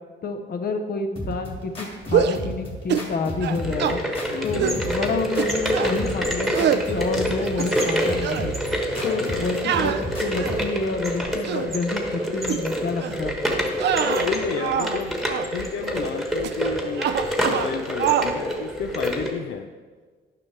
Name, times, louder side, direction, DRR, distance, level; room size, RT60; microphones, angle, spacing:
voice 1, 0.2-4.0 4.4-8.6 9.0-9.9 10.2-13.6, left 4 dB, 50° left, 6 dB, 0.9 m, -28 dB
sound 1, 1.2-10.8, equal, 25° left, 2.0 m, -34 dB
sound 2, 2.0-2.5 2.9-3.1 3.4-4.0 4.6-4.8 5.4-6.0 6.5-6.9 7.4-8.0 8.2-8.5 9.6-10.7 11.3-11.7 12.4-12.6 13.0-13.2 13.7-15.0 15.3-15.5 16.4-16.7 17.0-17.7 18.0-18.3, right 9 dB, 60° right, 0.5 m, -25 dB
sound 3, 3.5-19.3, equal, ahead, 1.3 m, -27 dB
voice 2, 4.3-4.8 8.9-9.5 13.9-15.1 15.5-17.1 17.5-19.7, left 6 dB, 70° left, 4 dB, 0.5 m, -31 dB
10.5 x 5.6 x 3.3 m, 1.5 s
cardioid pair, 90°, 20 cm